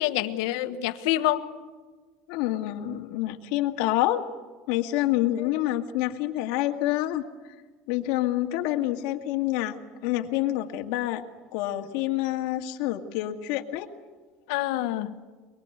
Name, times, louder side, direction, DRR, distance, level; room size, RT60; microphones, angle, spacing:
voice 1, 0.0-1.5 5.4-5.7 14.5-15.1, left 14 dB, 80° left, 1.4 m, -27 dB
voice 2, 2.3-4.2 4.7-7.3 7.9-9.8 10.0-11.2 11.5-13.9, left 14 dB, 65° left, 2.0 m, -27 dB
24.5 x 22.5 x 8.0 m
cardioid pair, 180°, 2 cm